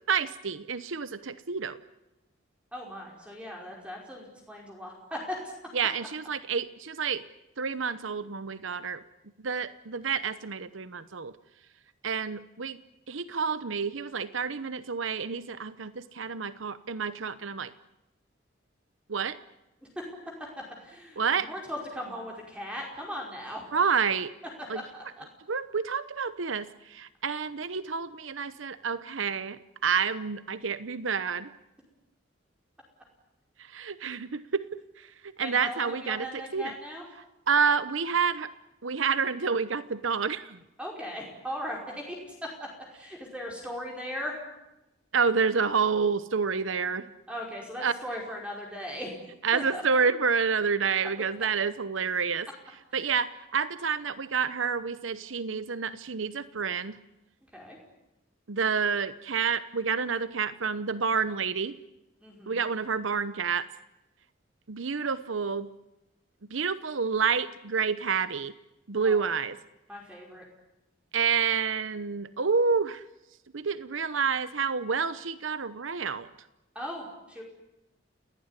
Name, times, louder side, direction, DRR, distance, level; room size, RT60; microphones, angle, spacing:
voice 1, 0.1-1.8 5.7-7.2 7.6-9.0 9.4-11.3 12.0-12.8 13.1-17.7 19.1-19.4 21.2-21.5 23.7-24.3 24.7-24.8 25.5-31.5 33.6-36.3 36.5-36.7 37.5-38.5 38.8-40.6 45.1-47.1 47.8-47.9 49.4-52.5 52.9-57.0 58.5-61.8 62.5-63.7 64.7-65.7 66.5-68.5 68.9-69.6 71.1-73.0 73.5-76.3, right 5 dB, 90° right, 14 dB, 0.9 m, -29 dB
voice 2, 2.7-5.5 19.9-20.0 20.4-20.5 20.8-23.6 24.9-25.2 35.4-37.0 40.8-41.8 42.1-42.2 42.4-44.3 47.3-49.1 49.5-49.8 52.9-53.1 57.5-57.8 62.2-62.6 69.0-69.2 69.9-70.4 76.7-77.4, equal, 5° right, -1 dB, 5.0 m, -38 dB
29.5 x 18.5 x 9.8 m, 0.96 s
head